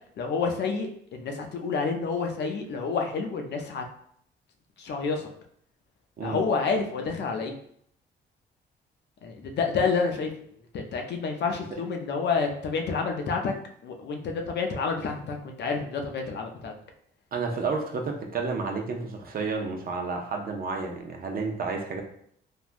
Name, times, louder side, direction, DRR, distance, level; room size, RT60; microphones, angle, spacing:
voice 1, 0.2-3.8 4.8-5.3 6.2-7.5 9.2-10.3 10.7-13.5 13.8-16.7, left 5 dB, 60° left, 3 dB, 0.5 m, -29 dB
voice 2, 17.3-22.0, right 4 dB, 50° right, 2 dB, 0.6 m, -31 dB
3.4 x 2.2 x 2.5 m, 0.66 s
cardioid pair, 90°, 20 cm